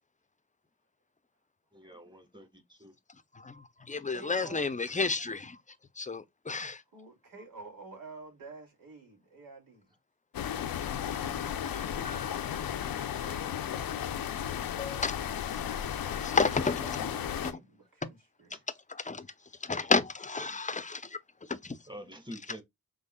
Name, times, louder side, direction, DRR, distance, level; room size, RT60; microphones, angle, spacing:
voice 1, 1.7-2.9 13.1-13.3 18.5-18.6 20.4-20.5 21.9-22.6, equal, 15° right, 1.7 m, -47 dB
voice 2, 3.3-5.6 6.0-6.8 11.7-12.4 14.8-15.2 15.5-15.6 16.1-17.6 18.9-19.3 19.6-21.2 21.5-21.8, left 4 dB, 20° left, 0.7 m, -32 dB
voice 3, 4.1-4.7 6.9-9.9 11.2-12.1 16.5-16.8 17.1-18.6, right 4 dB, 75° right, 2.6 m, -50 dB
sound 1, 10.3-17.5, left 9 dB, 85° left, 0.7 m, -34 dB
5.3 x 3.5 x 2.3 m
cardioid pair, 55°, 34 cm